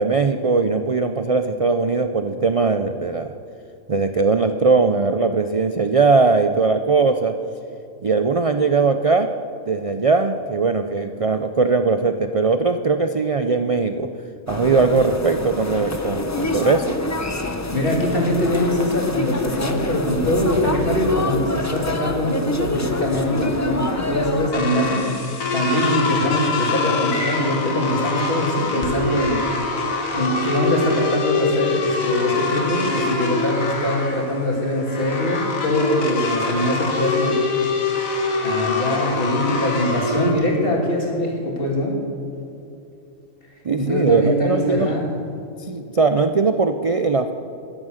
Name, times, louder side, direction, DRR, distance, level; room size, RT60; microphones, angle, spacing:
voice 1, 0.0-3.3 3.9-7.3 8.0-9.3 9.7-14.1 14.5-17.0 43.6-45.0 45.7-47.3, right 4 dB, 65° right, 8 dB, 0.3 m, -19 dB
sound 1, 14.5-24.5, left 2 dB, 20° left, 0.6 m, -27 dB
voice 2, 17.7-25.1 25.5-29.4 30.1-37.4 38.4-41.9 43.8-45.0, left 1 dB, 45° left, -2 dB, 3.0 m, -22 dB
sound 2, 23.1-40.3, left 3 dB, 85° left, 1.9 m, -25 dB
14.0 x 11.0 x 6.5 m, 2.8 s
omnidirectional pair, 1.4 m